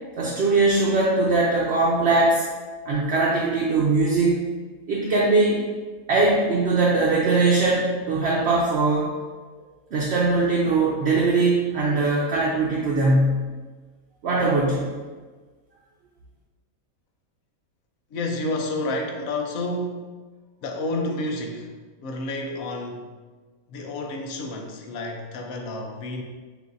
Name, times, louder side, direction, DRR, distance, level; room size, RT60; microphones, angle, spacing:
voice 1, 0.2-2.4 2.9-4.4 4.9-5.6 6.1-9.1 9.9-13.5 14.2-14.9, right 3 dB, 60° right, -5 dB, 0.8 m, -21 dB
voice 2, 18.1-20.2 20.6-21.8 22.0-23.1 23.7-26.2, left 2 dB, 75° left, 2 dB, 1.0 m, -30 dB
6.3 x 2.6 x 2.5 m, 1.4 s
omnidirectional pair, 1.5 m